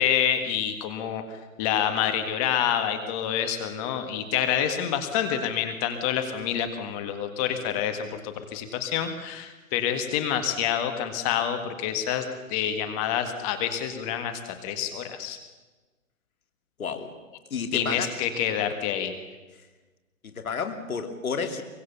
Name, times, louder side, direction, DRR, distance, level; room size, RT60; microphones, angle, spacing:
voice 1, 0.0-15.4 17.7-19.1, left 9 dB, 25° left, 7 dB, 1.8 m, -27 dB
voice 2, 16.8-17.1 17.5-18.1 20.2-21.6, left 5 dB, 75° left, 7 dB, 2.9 m, -31 dB
24.0 x 22.0 x 7.1 m, 1.2 s
hypercardioid pair, 145°, 42 cm